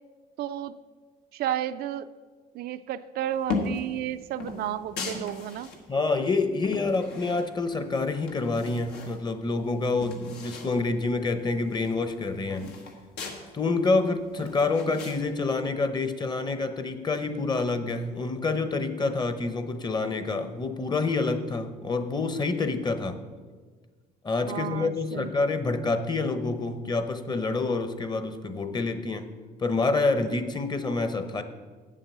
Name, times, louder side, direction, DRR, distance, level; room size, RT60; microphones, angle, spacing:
voice 1, 0.4-0.8 1.3-2.1 2.5-5.7 24.5-25.3, right 11 dB, 65° right, 11 dB, 0.4 m, -32 dB
sound 1, 3.4-3.9 4.4-5.8 6.3-7.8 8.1-9.2 9.5-9.6 9.8-10.7 11.1-11.2 11.5-13.4 13.9-15.2, left 4 dB, 90° left, 1.5 m, -36 dB
voice 2, 5.9-12.7 13.5-23.2 24.2-29.3 29.6-31.4, left 3 dB, 25° left, 10 dB, 0.8 m, -27 dB
8.2 x 7.4 x 6.8 m, 1.4 s
cardioid pair, 110°, 17 cm